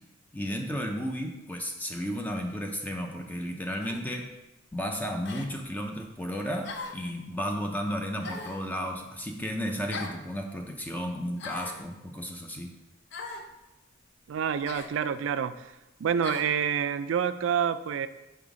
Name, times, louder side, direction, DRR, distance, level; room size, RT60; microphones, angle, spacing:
voice 1, 0.3-4.3 4.7-12.7, equal, 10° left, 3 dB, 0.5 m, -33 dB
sound 1, 3.8-4.0 5.2-5.5 6.6-7.1 8.2-8.6 9.9-10.2 11.4-11.8 13.1-13.5 14.6-14.9 16.2-16.5, left 4 dB, 60° left, 0.6 m, -39 dB
voice 2, 14.3-15.5 16.0-18.1, right 7 dB, 70° right, 12 dB, 0.3 m, -27 dB
5.6 x 3.5 x 4.9 m, 0.97 s
head